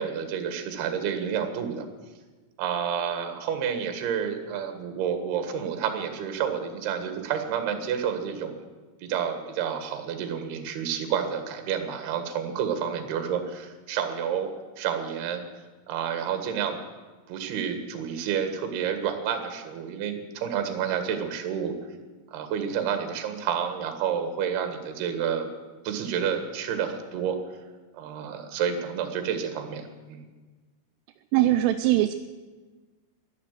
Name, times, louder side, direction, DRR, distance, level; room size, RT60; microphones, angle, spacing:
voice 1, 0.0-1.9 2.6-8.5 9.0-14.5 14.8-15.4 15.9-16.8 17.3-21.7 22.3-25.5 25.8-27.4 27.9-30.2, right 8 dB, 65° right, 6 dB, 3.1 m, -29 dB
voice 2, 31.3-32.1, right 14 dB, 85° right, 8 dB, 3.0 m, -21 dB
12.5 x 11.5 x 9.1 m, 1.3 s
omnidirectional pair, 5.8 m